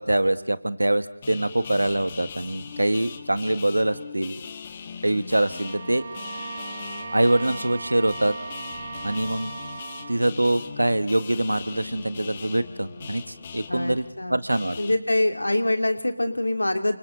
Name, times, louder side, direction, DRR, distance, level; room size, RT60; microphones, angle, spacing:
voice 1, 0.0-4.4 5.0-6.0 7.1-8.3 9.0-9.5 10.1-14.8, right 1 dB, 90° right, 12 dB, 1.5 m, -24 dB
sound 1, 1.2-14.9, left 6 dB, 25° left, 1.3 m, -40 dB
Bowed string instrument, 5.4-10.3, right 4 dB, 40° right, 1.3 m, -37 dB
voice 2, 13.7-14.4 14.8-17.0, left 1 dB, 90° left, 5 dB, 2.9 m, -24 dB
29.5 x 26.5 x 4.0 m, 0.86 s
figure-of-eight pair, 165°, 0 cm